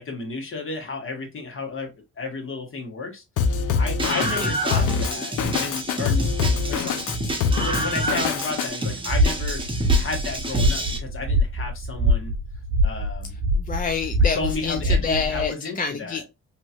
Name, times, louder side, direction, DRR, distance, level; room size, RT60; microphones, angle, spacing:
voice 1, 0.0-3.2 3.7-6.3 6.7-7.0 7.4-12.3 12.8-13.4 14.3-16.2, left 3 dB, 45° left, 1.4 m, -33 dB
Drum kit, 3.4-8.7, left 5 dB, 80° left, 0.6 m, -24 dB
Screaming, 4.0-11.0, right 1 dB, 15° right, 0.9 m, -28 dB
voice 2, 4.4-5.2 13.5-16.3, left 5 dB, 30° left, 0.4 m, -28 dB
sound 1, 9.1-15.5, equal, 45° right, 0.8 m, -23 dB
2.9 x 2.9 x 2.4 m
cardioid pair, 90°, 30 cm